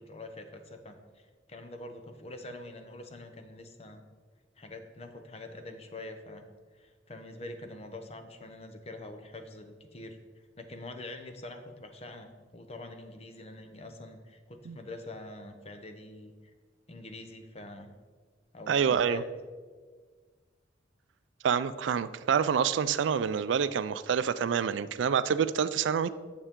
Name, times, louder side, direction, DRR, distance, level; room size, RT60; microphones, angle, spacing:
voice 1, 0.0-4.0 4.6-6.4 6.7-10.2 10.6-16.5 16.9-17.9 18.5-19.2, left 2 dB, 35° left, 6 dB, 0.7 m, -45 dB
voice 2, 18.7-19.2 21.4-26.1, right 7 dB, 75° right, 14 dB, 0.3 m, -27 dB
9.8 x 6.8 x 3.7 m, 1.5 s
head